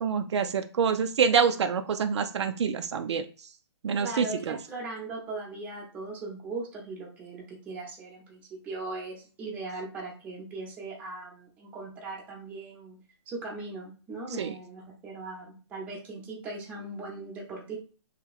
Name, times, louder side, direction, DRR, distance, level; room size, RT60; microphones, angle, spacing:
voice 1, 0.0-3.2 3.8-4.6 14.4-14.5, right 6 dB, 70° right, 7 dB, 0.4 m, -26 dB
voice 2, 4.0-13.0 13.3-17.8, right 3 dB, 10° right, -2 dB, 0.7 m, -39 dB
2.9 x 2.8 x 2.4 m, 0.37 s
hypercardioid pair, 160°, 15 cm